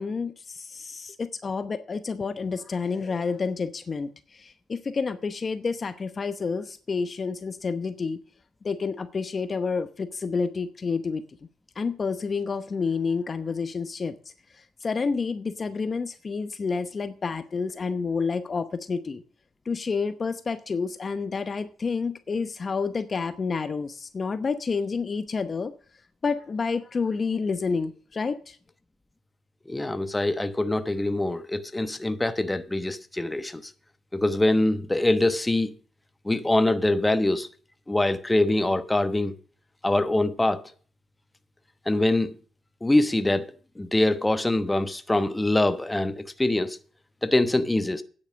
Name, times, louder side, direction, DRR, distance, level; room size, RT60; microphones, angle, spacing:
voice 1, 0.0-8.2 8.6-11.2 11.8-14.1 14.5-19.2 19.6-25.7 26.2-28.6, left 5 dB, 35° left, 0.8 m, -29 dB
voice 2, 29.7-33.7 34.1-35.7 36.2-37.5 37.9-39.3 39.8-40.6 41.9-42.3 42.8-43.5 43.8-46.8 47.2-48.0, left 1 dB, 10° left, 1.0 m, -24 dB
9.4 x 8.5 x 6.2 m
cardioid pair, 90°, 0 cm